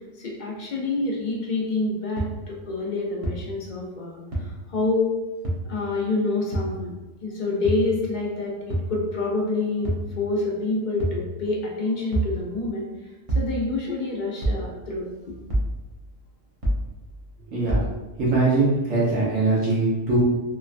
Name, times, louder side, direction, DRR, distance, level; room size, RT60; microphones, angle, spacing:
voice 1, 0.2-5.2 5.6-6.9 7.2-12.9 13.3-15.4, left 3 dB, 55° left, -3 dB, 0.5 m, -27 dB
sound 1, 2.2-2.3 3.2-3.3 4.3-4.4 5.4-5.6 6.5-6.7 7.6-7.8 8.7-8.9 9.8-10.1 11.0-11.2 12.1-12.3 13.3-13.5 14.4-14.6 15.5-15.7 16.6-16.8 17.7-17.9, right 1 dB, 40° right, 0.5 m, -25 dB
voice 2, 17.5-17.8 18.2-20.2, right 3 dB, 85° right, -7 dB, 1.3 m, -21 dB
3.0 x 2.2 x 2.4 m, 1.1 s
omnidirectional pair, 1.3 m